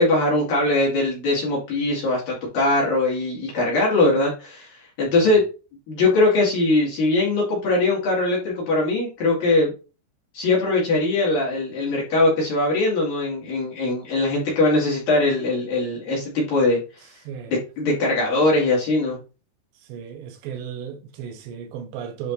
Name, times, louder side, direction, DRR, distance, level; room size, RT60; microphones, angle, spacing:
voice 1, 0.0-4.7 5.0-5.4 5.9-9.7 10.3-16.8 17.5-19.2, left 2 dB, 55° left, 3.5 m, -21 dB
voice 2, 19.9-22.3, right 8 dB, 75° right, 3.2 m, -34 dB
11.0 x 5.1 x 2.7 m
omnidirectional pair, 5.4 m